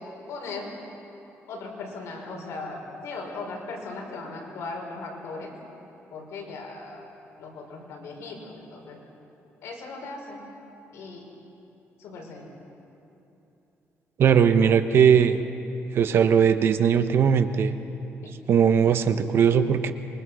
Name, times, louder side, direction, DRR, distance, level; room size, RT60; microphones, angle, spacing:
voice 1, 0.3-0.7 1.5-5.5 6.1-7.0 7.4-9.0 9.6-10.4 10.9-11.2 12.0-12.5 18.2-18.3, left 3 dB, 80° left, 0 dB, 5.5 m, -38 dB
voice 2, 14.2-15.4 15.9-17.7 18.5-19.9, right 7 dB, 55° right, 9 dB, 1.0 m, -19 dB
26.5 x 23.0 x 6.4 m, 3.0 s
cardioid pair, 130°, 5 cm